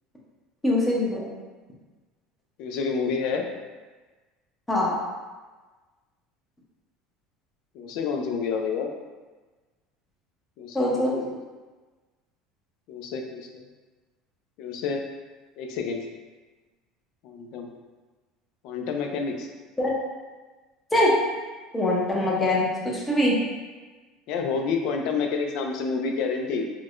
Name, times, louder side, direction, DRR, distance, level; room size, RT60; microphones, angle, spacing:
voice 1, 0.6-1.3 4.7-5.0 10.7-11.1 19.8-19.9 20.9-21.2 21.7-23.4, left 1 dB, 10° left, -4 dB, 0.7 m, -23 dB
voice 2, 2.6-3.5 7.7-8.9 10.6-11.4 12.9-13.6 14.6-15.0 15.6-16.1 17.2-17.7 18.6-19.5 24.3-26.6, left 5 dB, 60° left, 3 dB, 0.4 m, -29 dB
4.5 x 2.1 x 2.5 m, 1.3 s
cardioid pair, 145°, 0 cm